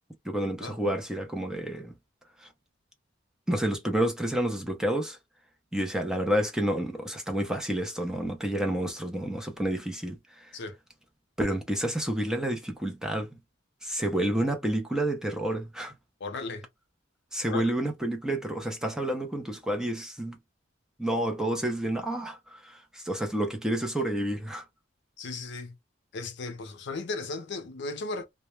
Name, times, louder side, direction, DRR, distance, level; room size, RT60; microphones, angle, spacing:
voice 1, 0.2-1.9 2.4-2.5 3.5-5.2 5.7-10.5 11.4-13.3 13.8-15.9 17.3-20.4 21.0-24.6, right 1 dB, 5° right, 0.5 m, -29 dB
voice 2, 16.2-16.7 17.4-17.7 25.2-25.8 26.1-28.3, left 3 dB, 65° left, 0.5 m, -36 dB
2.2 x 2.0 x 3.0 m
head